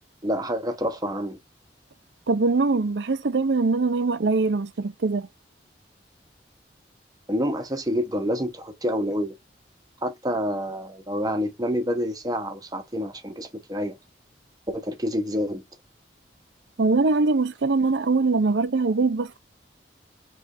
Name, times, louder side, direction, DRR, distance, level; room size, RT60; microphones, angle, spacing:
voice 1, 0.2-1.4 7.3-9.3 10.0-14.0 14.7-15.6, equal, 20° right, 1.0 m, -28 dB
voice 2, 2.3-5.3 16.8-19.4, right 3 dB, 80° right, 0.6 m, -22 dB
5.1 x 3.2 x 2.5 m
head